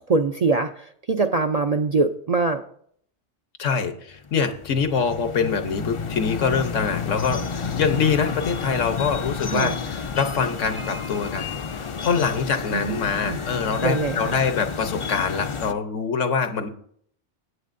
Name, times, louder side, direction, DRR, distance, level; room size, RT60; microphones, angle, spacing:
voice 1, 0.0-2.6 9.5-9.8 12.7-13.4 13.8-14.3, right 3 dB, 55° right, 6 dB, 0.4 m, -23 dB
voice 2, 3.6-16.7, left 5 dB, 85° left, 8 dB, 1.3 m, -24 dB
sound 1, 4.1-15.7, left 5 dB, 50° left, 0.3 m, -31 dB
18.0 x 8.4 x 2.6 m, 0.64 s
omnidirectional pair, 1.2 m